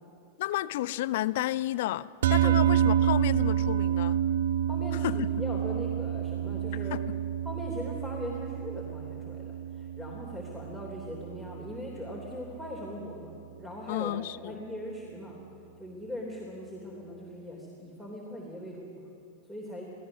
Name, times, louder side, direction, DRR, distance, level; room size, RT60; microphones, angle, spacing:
voice 1, 0.4-4.2 5.0-5.3 6.9-7.2 13.9-14.6, left 14 dB, 55° left, 18 dB, 0.5 m, -32 dB
sound 1, 2.2-12.7, right 10 dB, 60° right, 0.5 m, -29 dB
voice 2, 4.7-7.0 7.4-14.1 14.4-15.4 15.8-19.0 19.4-19.9, left 1 dB, 5° right, -1 dB, 3.4 m, -40 dB
25.5 x 16.5 x 6.1 m, 2.5 s
figure-of-eight pair, 90°, 0 cm